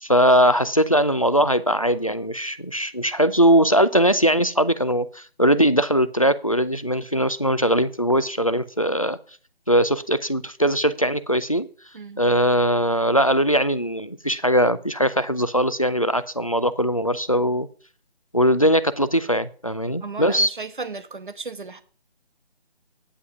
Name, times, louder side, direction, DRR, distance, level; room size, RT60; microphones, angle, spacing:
voice 1, 0.0-9.2 9.7-11.7 12.2-17.7 18.3-20.5, equal, 35° left, 15 dB, 0.5 m, -20 dB
voice 2, 20.0-21.8, right 4 dB, 50° right, 13 dB, 1.1 m, -35 dB
9.6 x 5.9 x 7.1 m, 0.41 s
figure-of-eight pair, 180°, 32 cm